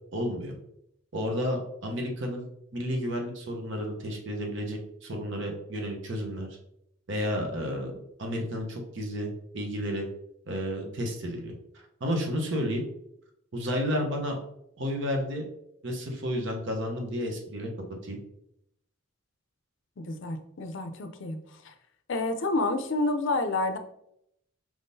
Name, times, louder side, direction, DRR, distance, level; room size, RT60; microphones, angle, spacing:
voice 1, 0.1-0.5 1.1-6.5 7.1-7.9 8.2-10.1 10.5-11.5 12.0-12.8 13.5-14.4 14.8-15.4 15.8-17.7 18.0-18.2, equal, 60° right, 2 dB, 0.8 m, -31 dB
voice 2, 20.0-21.4 21.6-21.7 22.1-23.8, left 2 dB, 60° left, 8 dB, 0.5 m, -29 dB
4.7 x 3.6 x 2.7 m, 0.77 s
head